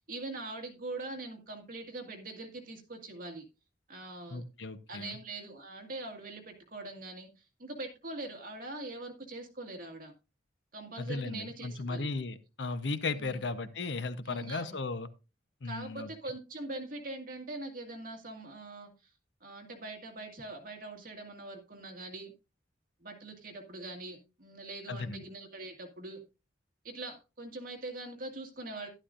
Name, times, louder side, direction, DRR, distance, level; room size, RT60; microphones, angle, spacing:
voice 1, 0.1-3.4 3.9-4.4 4.9-7.3 7.6-10.1 10.7-12.1 13.2-13.4 14.3-14.8 15.6-18.9 19.4-22.3 23.0-26.2 26.8-28.9, right 2 dB, 50° right, 4 dB, 2.1 m, -42 dB
voice 2, 4.3-5.1 11.0-15.1 15.6-16.1 24.9-25.2, left 3 dB, 70° left, 12 dB, 0.8 m, -36 dB
11.5 x 11.5 x 2.5 m, 0.29 s
head